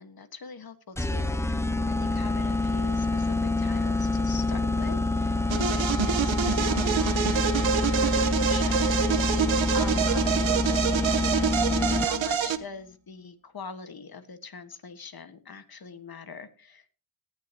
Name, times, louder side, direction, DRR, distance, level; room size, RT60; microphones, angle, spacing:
voice 1, 0.0-9.0 9.7-11.5 12.0-16.9, left 5 dB, 50° left, 9 dB, 1.7 m, -43 dB
sound 1, 1.0-12.4, left 2 dB, 5° left, 0.6 m, -26 dB
blue blood, 5.5-12.6, right 8 dB, 85° right, 1.1 m, -26 dB
18.0 x 11.0 x 3.0 m, 0.35 s
wide cardioid pair, 100°, 45 cm